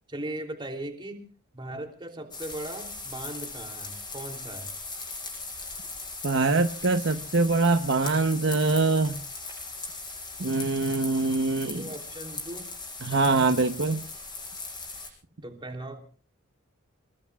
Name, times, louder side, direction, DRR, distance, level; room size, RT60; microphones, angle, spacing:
voice 1, 0.1-1.3 1.5-4.7 11.7-12.7 15.4-16.0, right 1 dB, 25° right, 2 dB, 3.2 m, -38 dB
sound 1, 2.3-15.1, left 3 dB, 20° left, 6.8 m, -39 dB
voice 2, 6.2-9.2 10.4-11.9 13.0-14.0, right 3 dB, 60° right, 7 dB, 1.0 m, -24 dB
27.5 x 21.0 x 2.4 m, 0.40 s
head